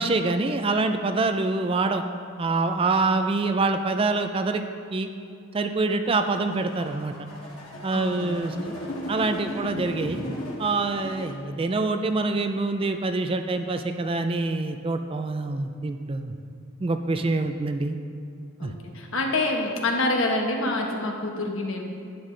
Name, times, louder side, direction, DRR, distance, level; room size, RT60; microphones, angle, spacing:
voice 1, 0.0-2.0 2.4-4.6 4.9-5.1 5.5-7.1 7.8-8.7 9.1-10.2 10.6-16.3 16.8-18.0 18.6-18.7, right 3 dB, 25° right, 7 dB, 0.3 m, -25 dB
sound 1, 6.1-11.3, left 1 dB, 85° left, 2.1 m, -36 dB
voice 2, 7.9-8.4 18.6-21.9, left 2 dB, 65° left, 1 dB, 1.1 m, -27 dB
11.0 x 8.2 x 3.3 m, 2.4 s
head